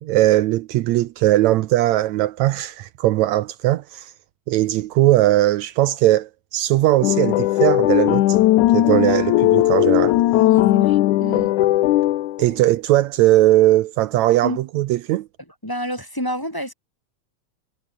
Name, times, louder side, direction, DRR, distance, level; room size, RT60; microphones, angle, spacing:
voice 1, 0.0-4.1 4.5-8.3 8.7-10.2 12.4-15.3, right 15 dB, 80° right, 2.0 m, -19 dB
sound 1, 7.0-12.5, left 15 dB, 90° left, 2.4 m, -17 dB
voice 2, 10.3-11.5 14.4-14.6 15.6-16.7, equal, 5° left, 3.7 m, -29 dB
omnidirectional pair, 3.4 m